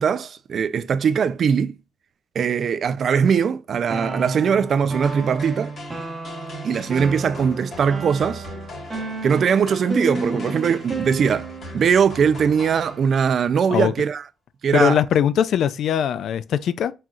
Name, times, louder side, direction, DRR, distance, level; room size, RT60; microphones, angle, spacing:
voice 1, 0.0-1.8 2.3-5.7 6.6-8.5 9.2-11.5 11.7-14.2 14.6-15.0, right 7 dB, 55° right, 0.4 m, -20 dB
sound 1, 3.9-11.8, right 3 dB, 30° right, 1.0 m, -32 dB
sound 2, 5.0-13.4, left 1 dB, 50° left, 2.1 m, -39 dB
voice 2, 14.7-16.9, left 9 dB, 70° left, 0.4 m, -20 dB
4.3 x 3.7 x 2.4 m
cardioid pair, 90°, 0 cm